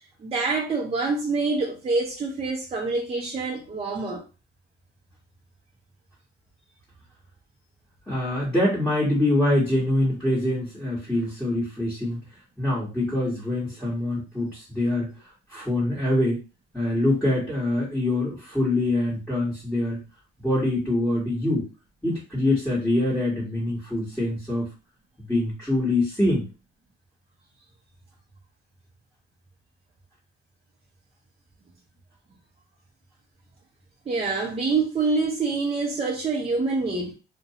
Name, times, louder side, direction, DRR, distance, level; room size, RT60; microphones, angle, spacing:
voice 1, 0.2-4.2 34.1-37.1, right 3 dB, 30° right, 0.6 m, -26 dB
voice 2, 8.1-12.2 12.6-15.1 15.5-16.4 16.7-20.0 20.4-21.7 22.0-24.7 25.2-26.4, left 1 dB, 5° left, 1.2 m, -24 dB
2.5 x 2.2 x 2.7 m
cardioid pair, 90°, 20 cm